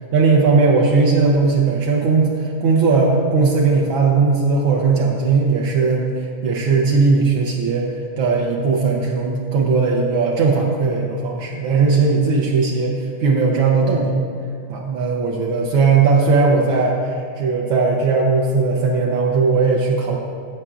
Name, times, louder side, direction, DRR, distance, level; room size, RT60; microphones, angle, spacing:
voice 1, 0.1-14.3 14.7-20.2, right 4 dB, 75° right, -1 dB, 1.5 m, -18 dB
12.5 x 7.6 x 2.5 m, 2.3 s
omnidirectional pair, 2.3 m